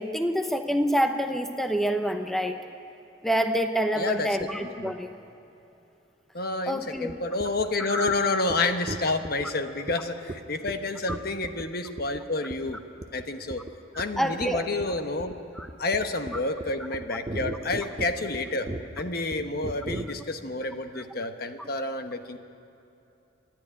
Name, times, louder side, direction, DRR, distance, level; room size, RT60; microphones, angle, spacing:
voice 1, 0.0-2.6 3.2-5.1 6.7-7.1 7.8-8.1 11.1-11.2 14.2-14.6 15.5-15.7 21.6-21.7, equal, ahead, 5 dB, 0.8 m, -27 dB
voice 2, 3.9-4.3 4.6-4.9 6.3-12.8 13.1-13.6 14.0-15.3 15.8-18.7 19.0-22.4, left 2 dB, 55° left, 7 dB, 1.1 m, -29 dB
sound 1, 7.1-7.2 7.4-7.6 8.1-8.2 8.5-8.6 8.9-9.5 9.9-10.0 10.3-10.4 10.7-10.8 11.1-11.6 12.0-12.2 12.5-12.7 13.0-13.3 13.5-13.7 14.0-20.0, right 1 dB, 25° right, 0.8 m, -36 dB
26.5 x 10.5 x 9.8 m, 2.9 s
head